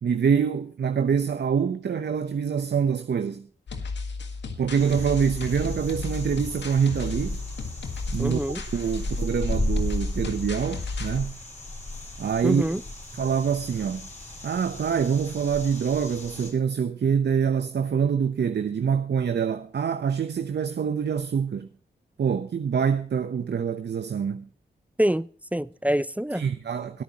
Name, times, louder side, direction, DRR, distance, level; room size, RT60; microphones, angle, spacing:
voice 1, 0.0-3.5 4.6-7.4 8.1-11.4 12.2-12.6 13.2-14.1 14.4-21.7 22.2-24.5 26.3-27.0, right 7 dB, 65° right, 0.9 m, -25 dB
sound 1, 3.7-11.2, left 4 dB, 75° left, 1.8 m, -34 dB
sound 2, 4.7-16.5, left 1 dB, 40° left, 6.4 m, -35 dB
voice 2, 8.2-8.6 12.4-12.8 25.0-26.4, right 1 dB, 10° right, 0.5 m, -25 dB
22.5 x 9.3 x 3.0 m
supercardioid pair, 40°, 18 cm